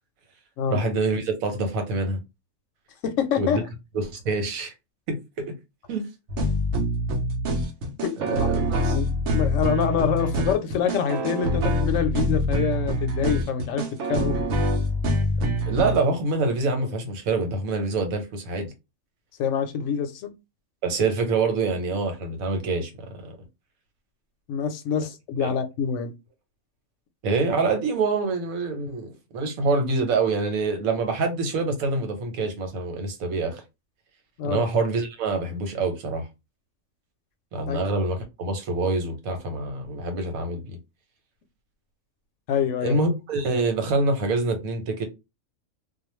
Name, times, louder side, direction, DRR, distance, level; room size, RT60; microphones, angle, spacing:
voice 1, 0.7-2.2 3.4-3.6 3.9-4.7 5.1-5.5 5.9-6.1 8.2-9.0 15.6-18.7 20.8-23.4 25.4-25.5 27.2-33.6 34.4-36.3 37.5-40.8 42.8-45.1, right 3 dB, 90° right, 1.2 m, -26 dB
voice 2, 3.0-3.6 8.0-8.5 8.9-9.1 9.3-14.4 19.4-20.3 24.5-26.1 34.4-34.6 37.7-37.8 42.5-43.0, left 7 dB, 70° left, 0.9 m, -26 dB
sound 1, 6.3-16.0, equal, 65° right, 0.9 m, -25 dB
2.4 x 2.2 x 2.9 m
omnidirectional pair, 1.4 m